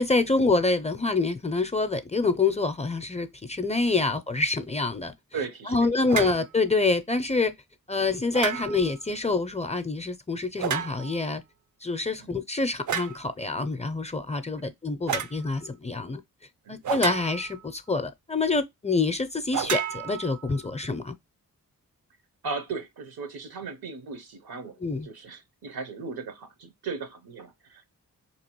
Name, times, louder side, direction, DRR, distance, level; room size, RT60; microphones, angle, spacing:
voice 1, 0.0-5.1 5.7-7.5 7.9-11.4 11.8-16.2 16.7-21.2 24.8-25.1, left 3 dB, 20° left, 0.4 m, -26 dB
voice 2, 5.3-6.3 12.2-12.3 14.6-14.7 16.6-16.8 22.4-24.8 25.0-27.9, right 4 dB, 80° right, 0.9 m, -37 dB
sound 1, 6.1-6.4 8.3-8.9 10.6-11.2 12.9-13.2 15.1-15.4 16.8-17.6 19.5-20.6, right 7 dB, 55° right, 0.5 m, -31 dB
3.9 x 2.9 x 2.9 m
cardioid pair, 55°, 36 cm